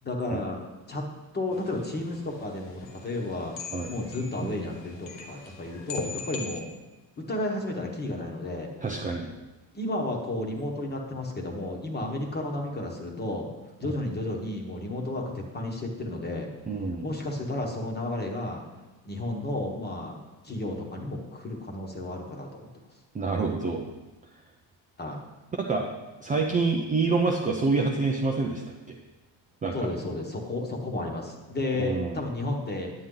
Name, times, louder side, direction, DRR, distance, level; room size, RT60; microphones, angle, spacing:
voice 1, 0.0-1.1 1.3-3.6 3.9-6.7 7.2-8.7 9.7-13.5 13.8-16.5 17.0-18.6 19.0-20.2 20.4-22.6 25.0-25.2 29.7-32.9, left 2 dB, 20° left, 1 dB, 1.3 m, -32 dB
sound 1, 1.5-6.6, left 4 dB, 65° left, 1.3 m, -41 dB
voice 2, 8.8-9.3 13.8-13.9 16.7-17.1 23.1-23.9 25.6-25.8 26.2-28.6 28.9-29.0 29.6-29.9 31.8-32.2, right 3 dB, 20° right, 0 dB, 0.5 m, -27 dB
9.8 x 9.0 x 3.9 m, 1.1 s
cardioid pair, 170°, 46 cm